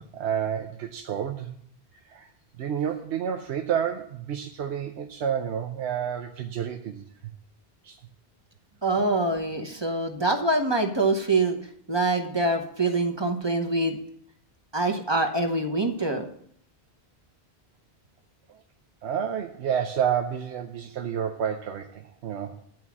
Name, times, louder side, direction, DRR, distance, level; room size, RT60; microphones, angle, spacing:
voice 1, 0.0-1.5 2.0-2.3 2.6-7.0 7.8-8.0 18.5-18.6 19.0-22.6, right 8 dB, 85° right, 3 dB, 1.0 m, -30 dB
voice 2, 8.8-11.6 11.9-14.0 14.7-16.2, right 2 dB, 25° right, 4 dB, 0.9 m, -25 dB
10.5 x 4.6 x 7.1 m, 0.66 s
omnidirectional pair, 1.1 m